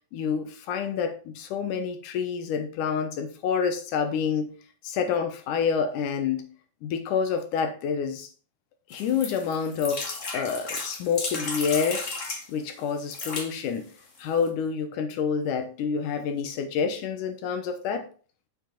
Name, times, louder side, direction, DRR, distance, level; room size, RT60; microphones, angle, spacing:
voice 1, 0.1-4.6 4.8-6.5 6.8-8.3 8.9-12.1 12.5-13.9 14.2-18.1, left 6 dB, 80° left, 2.5 m, -28 dB
sound 1, 8.9-12.4 13.0-13.5 14.2-14.3 14.5-14.6, left 3 dB, 55° left, 0.8 m, -34 dB
7.1 x 6.8 x 3.9 m
omnidirectional pair, 3.7 m